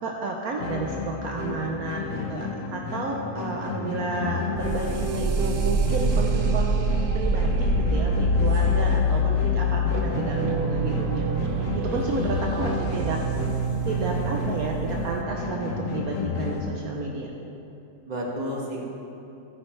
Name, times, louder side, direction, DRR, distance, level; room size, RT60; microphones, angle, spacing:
voice 1, 0.0-6.8 7.1-11.3 11.7-13.2 13.8-17.3, right 3 dB, 65° right, 0 dB, 1.2 m, -31 dB
sound 1, 0.6-16.6, left 4 dB, 70° left, 1.5 m, -32 dB
voice 2, 1.9-2.4 12.5-13.2 18.1-18.8, equal, 25° right, -3 dB, 1.5 m, -34 dB
sound 2, 4.6-15.2, right 1 dB, 90° right, 0.4 m, -25 dB
15.5 x 9.5 x 3.3 m, 2.9 s
omnidirectional pair, 1.7 m